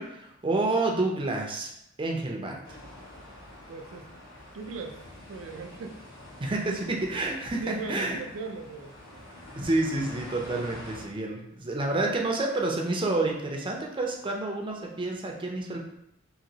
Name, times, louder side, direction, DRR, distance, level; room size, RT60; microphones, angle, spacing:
voice 1, 0.0-1.7 2.0-2.6 6.4-8.2 9.6-15.8, right 2 dB, 25° right, 1 dB, 0.5 m, -29 dB
sound 1, 2.6-11.1, left 1 dB, 65° left, 1.0 m, -46 dB
voice 2, 3.7-4.1 4.5-5.0 5.3-6.0 7.6-8.9, right 4 dB, 85° right, 5 dB, 0.4 m, -38 dB
2.9 x 2.7 x 2.7 m, 0.79 s
head